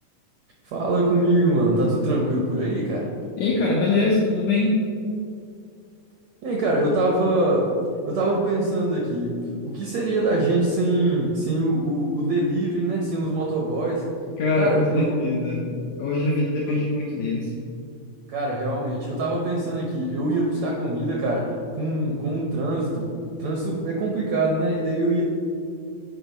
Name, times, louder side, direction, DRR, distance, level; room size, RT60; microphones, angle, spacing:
voice 1, 0.6-3.1 6.4-7.7 8.1-14.0 14.5-15.1 16.6-16.8 18.3-23.1 23.4-25.2, right 2 dB, 75° right, -2 dB, 1.5 m, -23 dB
voice 2, 3.4-4.8 14.4-17.5, left 2 dB, 90° left, -3 dB, 1.5 m, -23 dB
7.9 x 4.7 x 4.0 m, 2.4 s
omnidirectional pair, 3.8 m